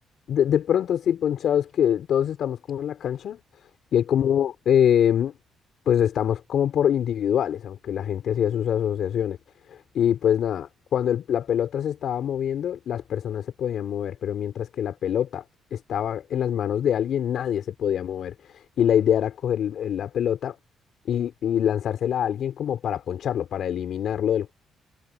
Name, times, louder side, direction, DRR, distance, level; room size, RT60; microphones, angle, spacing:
voice 1, 0.3-3.4 3.9-5.3 5.8-9.4 9.7-15.4 15.7-20.6 21.1-24.5, left 9 dB, 65° left, 5.0 m, -24 dB
cardioid pair, 90°, 0 cm